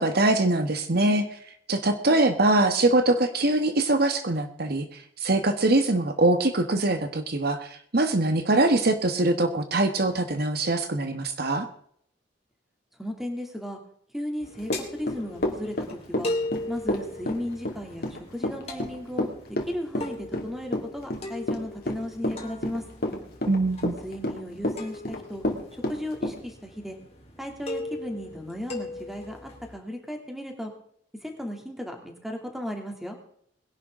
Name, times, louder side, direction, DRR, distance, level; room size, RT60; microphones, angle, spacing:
voice 1, 0.0-1.4 1.7-11.7 23.5-23.9, right 2 dB, 55° right, 7 dB, 1.4 m, -23 dB
voice 2, 13.0-13.8 14.1-16.3 16.7-19.3 19.7-22.9 24.0-25.4 25.7-27.0 27.4-30.7 31.2-33.2, left 1 dB, ahead, 2 dB, 2.8 m, -35 dB
sound 1, 14.4-29.7, left 2 dB, 35° left, 3.2 m, -39 dB
Run / Walk footsteps, 14.7-26.4, left 1 dB, 55° left, 2.7 m, -29 dB
21.5 x 11.0 x 3.8 m, 0.64 s
head